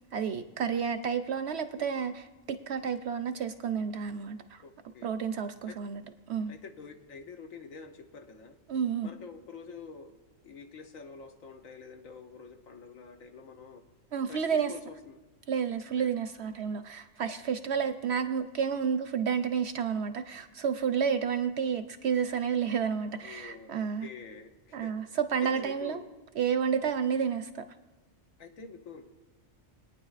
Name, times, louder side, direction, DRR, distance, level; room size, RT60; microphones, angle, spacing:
voice 1, 0.1-4.6 5.0-6.0 6.3-6.5 8.7-9.1 14.1-14.7 15.5-24.1 24.7-26.0 26.4-27.6, right 7 dB, 65° right, 0.7 m, -30 dB
voice 2, 4.6-5.2 5.7-5.8 6.5-8.6 9.0-10.2 10.4-13.8 14.3-15.2 15.9-16.1 23.2-25.1 25.4-26.0 28.4-29.1, left 5 dB, 80° left, 1.3 m, -47 dB
21.5 x 9.3 x 2.5 m
omnidirectional pair, 1.4 m